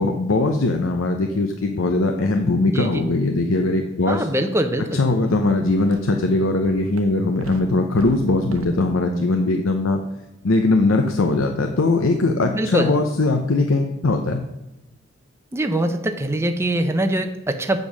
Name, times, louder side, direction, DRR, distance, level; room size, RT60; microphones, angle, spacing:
voice 1, 0.0-4.3 4.9-10.0 10.4-14.4, left 2 dB, 75° left, 5 dB, 0.7 m, -20 dB
voice 2, 2.6-3.0 4.1-5.0 12.4-12.9 15.5-17.8, right 1 dB, 10° right, 6 dB, 0.5 m, -23 dB
sound 1, 5.2-5.4 5.7-6.2 6.6-8.6, right 2 dB, 90° right, 1.0 m, -38 dB
8.4 x 5.3 x 6.3 m, 1.0 s
head